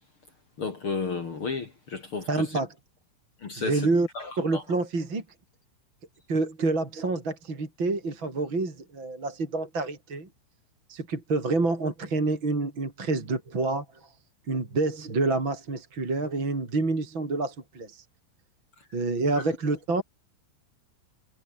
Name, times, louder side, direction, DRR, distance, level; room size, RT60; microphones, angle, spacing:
voice 1, 0.6-2.3 3.4-3.8 4.2-4.6, left 4 dB, 45° left, 1.8 m, -32 dB
voice 2, 2.3-2.7 3.6-4.1 4.4-5.2 6.3-10.3 10.9-14.1 14.5-18.0 18.9-20.0, right 3 dB, 25° right, 4.9 m, -28 dB
omnidirectional pair, 6.0 m